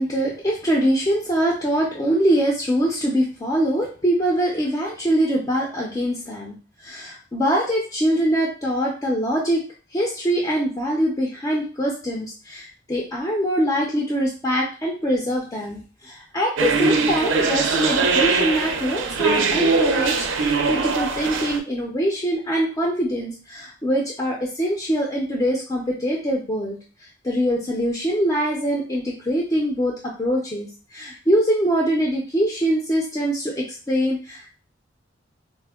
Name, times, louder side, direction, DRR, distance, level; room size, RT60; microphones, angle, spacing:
voice 1, 0.0-9.6 9.9-34.5, equal, 20° left, -2 dB, 0.4 m, -23 dB
sound 1, 16.6-21.6, right 4 dB, 70° right, 0.4 m, -21 dB
4.2 x 2.1 x 2.2 m, 0.37 s
head